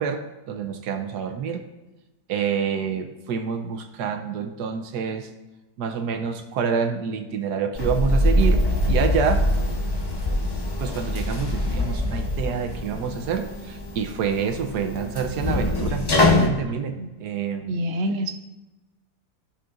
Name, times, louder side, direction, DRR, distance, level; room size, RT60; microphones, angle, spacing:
voice 1, 0.0-1.6 2.3-5.3 5.8-9.4 10.8-17.8, right 6 dB, 80° right, 6 dB, 1.3 m, -27 dB
sound 1, 7.8-16.5, left 1 dB, 40° left, 0.3 m, -23 dB
voice 2, 17.7-18.3, equal, 55° right, 5 dB, 0.7 m, -26 dB
14.0 x 5.1 x 2.5 m, 1.1 s
omnidirectional pair, 1.7 m